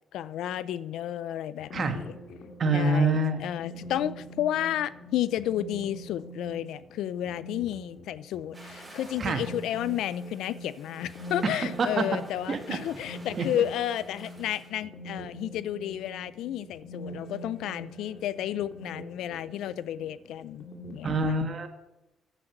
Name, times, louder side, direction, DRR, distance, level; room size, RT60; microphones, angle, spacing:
voice 1, 0.1-2.2 2.7-21.4, left 11 dB, 85° left, 0.4 m, -32 dB
sound 1, 1.6-21.1, equal, 65° left, 2.1 m, -44 dB
voice 2, 2.6-3.4 9.2-9.4 11.4-12.1 12.5-12.8 13.4-13.6 21.0-21.7, right 3 dB, 50° right, 1.4 m, -26 dB
sound 2, 8.5-14.7, right 1 dB, 15° right, 4.9 m, -51 dB
9.9 x 7.9 x 5.8 m
cardioid pair, 90°, 0 cm